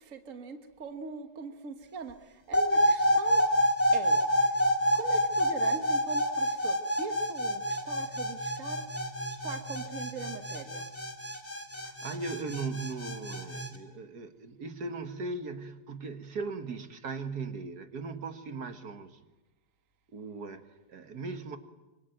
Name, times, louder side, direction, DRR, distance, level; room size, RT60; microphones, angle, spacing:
voice 1, 0.0-3.4 3.9-4.2 4.9-8.8 9.4-10.9, right 5 dB, 50° right, 8 dB, 1.7 m, -41 dB
sound 1, 2.5-13.7, equal, 10° left, 2.5 m, -28 dB
voice 2, 11.8-19.2 20.1-21.6, right 4 dB, 70° right, 9 dB, 2.1 m, -38 dB
26.0 x 24.5 x 9.2 m, 1.0 s
omnidirectional pair, 1.8 m